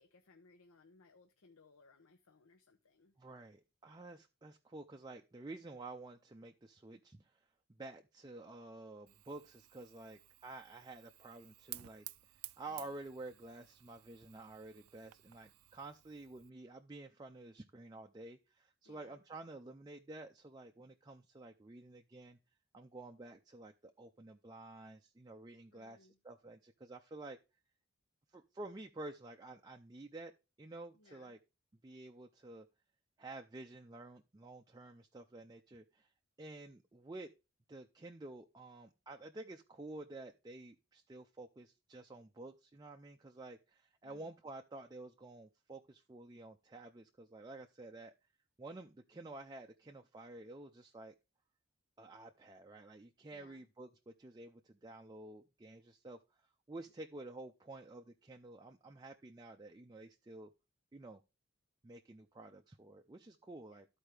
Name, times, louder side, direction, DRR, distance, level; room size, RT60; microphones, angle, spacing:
voice 1, 0.0-3.1 12.7-12.9 18.8-19.2 25.7-26.2 30.9-31.3 44.0-44.3 53.3-53.7 63.7-63.8, left 3 dB, 80° left, 7 dB, 0.7 m, -65 dB
voice 2, 3.2-22.4 22.7-27.4 28.3-30.3 30.6-31.4 31.8-32.7 33.2-36.1 36.4-37.3 37.7-48.1 48.6-51.1 52.0-56.2 56.7-60.5 60.9-61.2 61.8-63.9, right 2 dB, 20° right, 4 dB, 0.4 m, -51 dB
Fire, 9.1-16.5, right 17 dB, 85° right, 0.4 m, -55 dB
13.5 x 4.5 x 3.3 m, 0.28 s
head